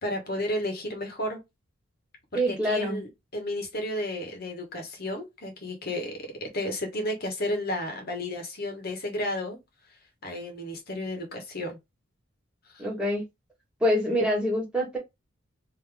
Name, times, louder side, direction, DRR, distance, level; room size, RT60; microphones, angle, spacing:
voice 1, 0.0-1.4 2.3-9.6 10.2-11.8 12.7-12.9, left 1 dB, 45° left, 1.3 m, -32 dB
voice 2, 2.3-3.0 12.8-13.2 13.8-15.0, equal, 5° right, 1.6 m, -25 dB
3.5 x 2.9 x 3.4 m
head